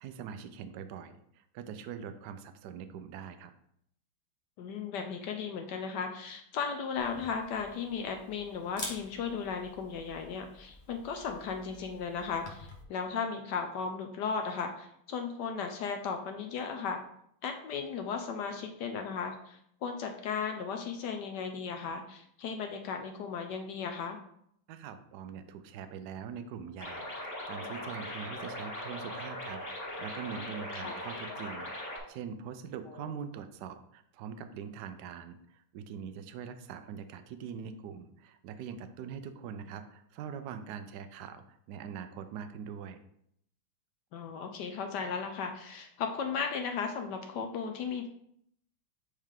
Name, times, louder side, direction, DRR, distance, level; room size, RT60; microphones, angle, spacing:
voice 1, 0.0-3.5 24.7-43.0, right 7 dB, 80° right, 9 dB, 0.9 m, -43 dB
voice 2, 4.6-17.0 17.4-24.2 30.7-31.0 33.0-33.1 44.1-48.1, left 6 dB, 75° left, 5 dB, 1.0 m, -36 dB
Camera, 7.0-12.8, left 2 dB, 55° left, 0.5 m, -48 dB
sound 1, 26.8-32.0, left 1 dB, 30° left, 1.5 m, -40 dB
8.0 x 3.3 x 3.6 m, 0.70 s
omnidirectional pair, 2.3 m